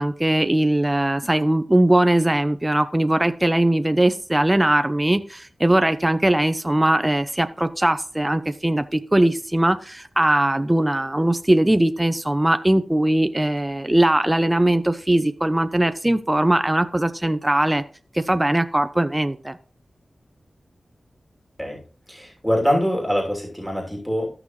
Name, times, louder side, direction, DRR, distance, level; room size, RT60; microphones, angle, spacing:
voice 1, 0.0-17.8 18.1-19.6, right 1 dB, 20° right, 10 dB, 0.7 m, -20 dB
voice 2, 22.1-24.3, equal, ahead, -2 dB, 2.9 m, -23 dB
13.5 x 6.0 x 3.1 m, 0.39 s
wide cardioid pair, 60°, 0 cm